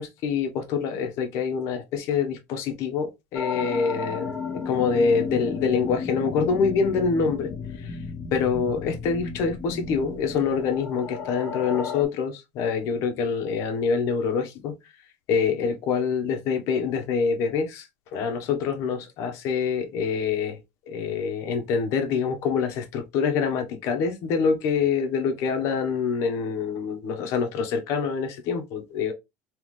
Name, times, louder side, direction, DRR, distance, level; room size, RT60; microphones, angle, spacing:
voice 1, 0.0-7.5 7.8-8.0 8.3-14.7 15.3-17.9 18.1-20.6 20.9-29.1, left 5 dB, 55° left, 1.2 m, -26 dB
sound 1, 3.3-12.0, left 5 dB, 20° left, 1.3 m, -33 dB
3.4 x 3.2 x 3.7 m
supercardioid pair, 140°, 6 cm